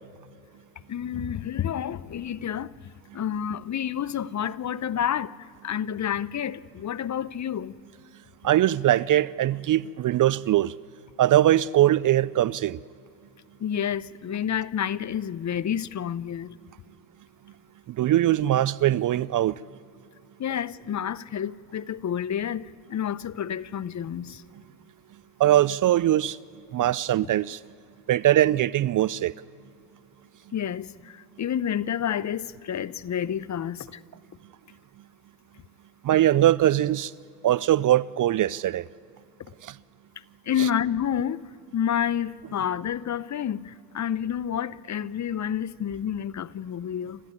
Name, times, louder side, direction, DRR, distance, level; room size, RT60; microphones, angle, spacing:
voice 1, 0.9-7.7 13.6-16.6 20.4-24.4 30.5-34.0 40.2-47.2, left 9 dB, 35° left, 0.7 m, -29 dB
voice 2, 8.4-10.8 11.2-12.8 17.9-19.6 25.4-26.4 26.7-27.6 28.1-29.3 36.0-37.1 37.4-38.9 39.6-39.7 40.6-40.7, right 13 dB, 40° right, 0.5 m, -21 dB
29.0 x 14.0 x 9.6 m
supercardioid pair, 75°, 49 cm